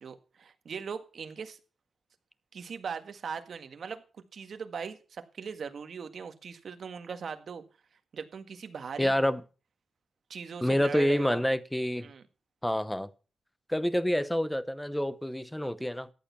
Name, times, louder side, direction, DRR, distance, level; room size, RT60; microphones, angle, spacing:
voice 1, 0.0-1.6 2.5-4.0 4.3-7.6 8.1-9.1 10.3-11.4 12.0-12.2, right 6 dB, 60° right, 1.7 m, -39 dB
voice 2, 9.0-9.4 10.6-12.1 12.6-13.1 13.7-16.1, equal, 5° left, 0.8 m, -28 dB
14.0 x 9.5 x 5.7 m
wide cardioid pair, 125°, 0 cm